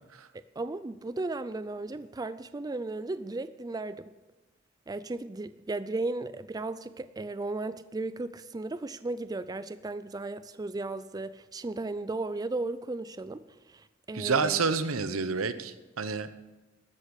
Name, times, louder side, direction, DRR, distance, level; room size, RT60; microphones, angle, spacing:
voice 1, 0.6-4.1 4.9-14.6, right 2 dB, 20° right, 14 dB, 0.4 m, -35 dB
voice 2, 14.1-16.3, right 5 dB, 90° right, 12 dB, 0.9 m, -29 dB
13.0 x 8.1 x 8.1 m, 1.1 s
head